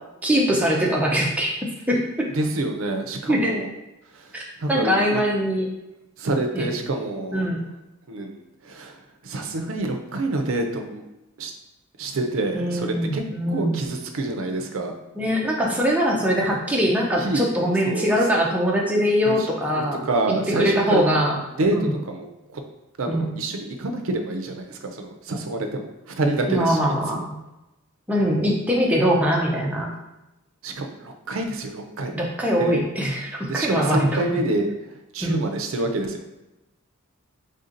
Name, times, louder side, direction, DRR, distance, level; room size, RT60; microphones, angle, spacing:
voice 1, 0.2-1.5 1.9-2.0 3.3-3.6 4.3-4.4 4.7-5.6 6.5-6.7 7.3-7.6 12.5-13.9 15.2-20.0 20.3-21.4 21.7-21.9 23.1-23.3 26.5-27.4 28.1-29.9 32.1-34.2 35.2-35.4, equal, 5° right, -2 dB, 0.5 m, -22 dB
voice 2, 2.3-3.7 4.6-5.2 6.2-7.4 8.1-9.0 9.2-11.1 11.4-11.5 12.0-13.2 13.5-15.0 17.2-17.5 17.9-18.1 19.3-19.5 19.7-21.2 21.6-22.6 23.0-27.2 30.6-32.2 32.6-32.8 33.5-34.7 35.1-36.2, right 2 dB, 65° right, 4 dB, 0.5 m, -27 dB
3.5 x 2.7 x 3.8 m, 0.96 s
head